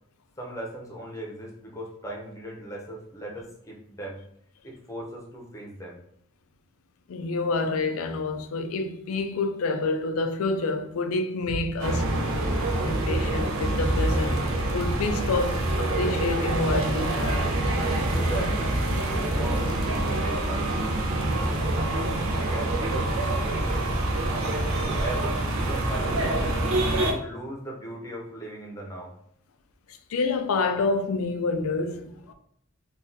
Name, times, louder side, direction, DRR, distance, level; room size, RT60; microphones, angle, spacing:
voice 1, 0.4-4.2 4.6-6.0 18.1-21.8 22.3-23.1 25.0-26.4 26.9-29.1, right 1 dB, 15° left, 0.7 m, -38 dB
voice 2, 7.1-12.1 12.8-17.5 29.9-32.3, left 3 dB, 80° left, 0.4 m, -28 dB
sound 1, 11.8-27.1, right 1 dB, 75° right, 0.7 m, -26 dB
3.9 x 2.4 x 2.7 m
head